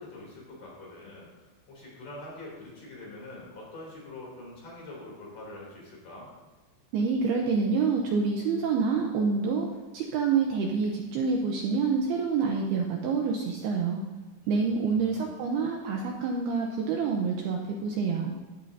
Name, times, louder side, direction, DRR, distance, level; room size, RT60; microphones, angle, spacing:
voice 1, 0.0-6.3 14.4-15.5, left 2 dB, 45° left, -4 dB, 4.5 m, -45 dB
voice 2, 6.9-9.7 9.9-14.0 14.5-18.3, right 5 dB, 75° right, 1 dB, 2.4 m, -27 dB
16.0 x 12.0 x 2.8 m, 1.2 s
omnidirectional pair, 5.4 m